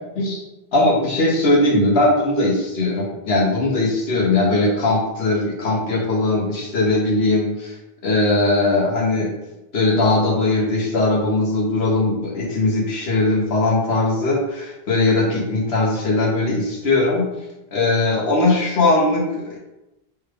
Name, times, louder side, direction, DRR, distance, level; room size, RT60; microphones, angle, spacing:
voice 1, 0.7-7.8 8.0-9.3 9.7-17.3 17.7-19.6, left 2 dB, 75° left, -2 dB, 1.0 m, -19 dB
4.5 x 2.4 x 3.3 m, 0.95 s
omnidirectional pair, 1.1 m